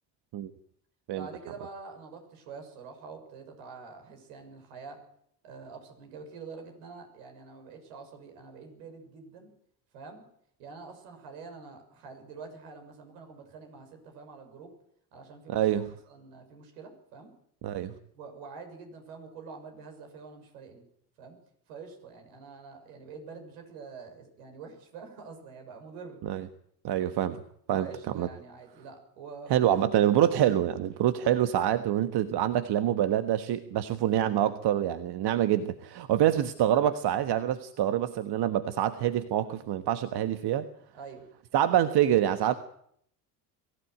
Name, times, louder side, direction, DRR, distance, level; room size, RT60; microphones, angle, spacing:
voice 1, 1.1-5.0 5.4-9.5 9.9-10.2 10.6-14.7 15.1-17.3 18.1-20.8 21.2-21.4 21.7-26.5 27.7-29.6 40.9-41.3, right 5 dB, 75° right, 5 dB, 6.5 m, -46 dB
voice 2, 15.5-15.9 17.6-17.9 26.2-26.5 26.8-27.4 27.7-27.9 28.1-28.3 29.5-40.7 41.5-42.5, right 11 dB, 50° right, 11 dB, 1.4 m, -26 dB
23.0 x 15.5 x 9.4 m, 0.70 s
hypercardioid pair, 65°, 50 cm